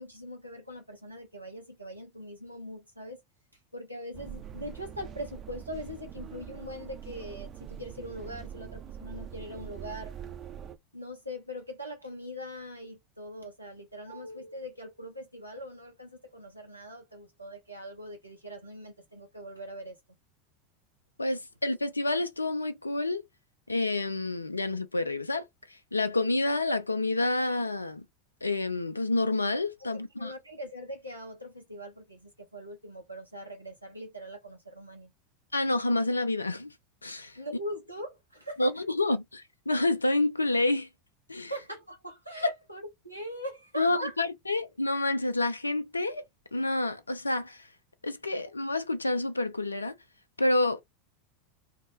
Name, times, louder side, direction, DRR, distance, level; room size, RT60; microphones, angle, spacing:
voice 1, 0.0-3.2 3.7-10.1 10.9-20.0 30.2-35.1 37.4-38.7 41.5-44.2, equal, 90° right, 0.5 m, -41 dB
sound 1, 4.1-10.7, right 9 dB, 30° right, 0.6 m, -43 dB
voice 2, 21.2-23.2 23.7-28.0 28.4-30.3 35.5-36.7 37.0-37.4 38.6-40.9 41.3-41.5 43.8-46.2 46.5-47.7 48.0-49.9 50.4-50.8, left 2 dB, 80° left, 0.3 m, -28 dB
2.2 x 2.0 x 3.0 m
figure-of-eight pair, 85°, 0 cm